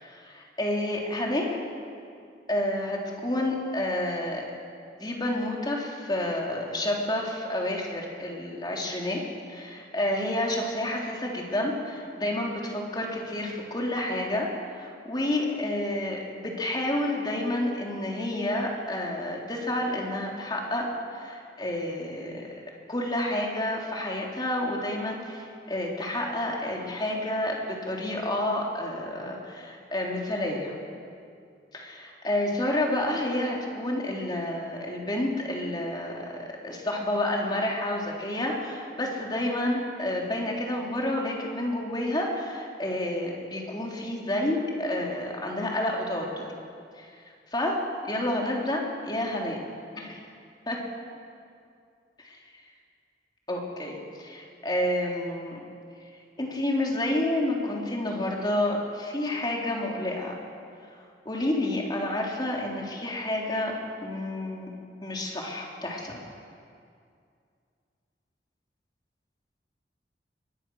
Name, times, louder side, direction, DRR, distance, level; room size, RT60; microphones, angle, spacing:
voice 1, 0.0-1.5 2.5-4.4 5.0-9.2 9.5-14.5 14.8-22.6 22.9-30.8 31.7-46.5 46.9-47.8 48.0-49.6 50.0-50.2 50.7-50.8 53.5-55.6 56.4-60.4 61.3-63.7 64.0-64.7 65.0-66.2, left 1 dB, 25° left, -1 dB, 3.5 m, -29 dB
23.0 x 21.0 x 6.4 m, 2.3 s
head